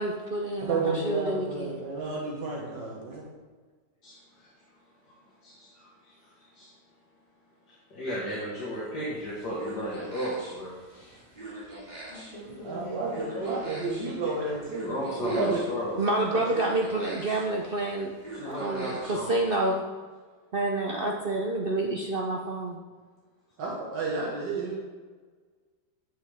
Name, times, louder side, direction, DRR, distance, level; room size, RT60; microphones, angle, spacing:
voice 1, 0.0-1.7 16.0-18.1 18.5-19.7 20.5-22.8, right 2 dB, 65° right, 0 dB, 0.5 m, -28 dB
voice 2, 0.6-3.2 12.6-14.9 15.2-15.6 16.3-16.4 23.6-24.8, right 3 dB, 85° right, -4 dB, 2.0 m, -31 dB
voice 3, 4.0-4.7 5.0-5.2 5.4-6.7 7.7-10.8 14.8-16.0 18.3-19.8, equal, 70° left, -6 dB, 2.0 m, -35 dB
sound 1, 9.2-19.4, right 1 dB, 25° right, 2.1 m, -45 dB
voice 4, 12.1-13.7, equal, 35° left, -10 dB, 2.1 m, -42 dB
8.9 x 6.6 x 3.4 m, 1.4 s
omnidirectional pair, 1.9 m